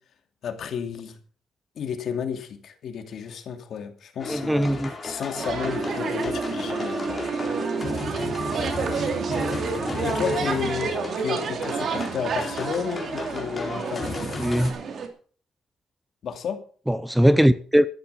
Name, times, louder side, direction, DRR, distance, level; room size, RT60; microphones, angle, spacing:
voice 1, 0.4-1.2 1.8-7.1 10.0-14.3 16.2-16.6, left 7 dB, 65° left, 2.6 m, -32 dB
sound 1, 4.2-14.7, left 3 dB, 35° left, 4.4 m, -34 dB
voice 2, 4.3-4.9 14.4-14.8 16.9-17.9, equal, 5° right, 0.7 m, -20 dB
sound 2, 5.3-15.1, right 5 dB, 55° right, 2.8 m, -30 dB
sound 3, 5.7-11.5, right 4 dB, 35° right, 3.1 m, -33 dB
13.0 x 10.5 x 5.7 m
cardioid pair, 90°, 0 cm